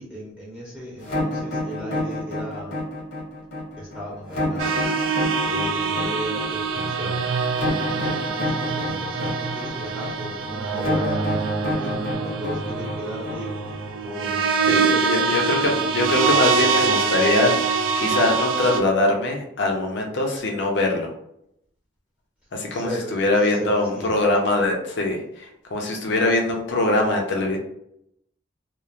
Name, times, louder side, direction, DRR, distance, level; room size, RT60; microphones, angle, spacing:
voice 1, 0.0-2.7 3.8-4.8 5.4-7.2 7.6-13.5 14.0-15.6 22.7-24.2, equal, 5° right, -6 dB, 0.6 m, -36 dB
sound 1, 1.0-13.9, left 2 dB, 80° left, 1.3 m, -28 dB
sound 2, 4.6-18.8, right 5 dB, 85° right, 0.4 m, -24 dB
voice 2, 14.6-21.1 22.5-27.6, left 2 dB, 60° left, 1 dB, 0.6 m, -22 dB
3.0 x 2.0 x 2.4 m, 0.78 s
head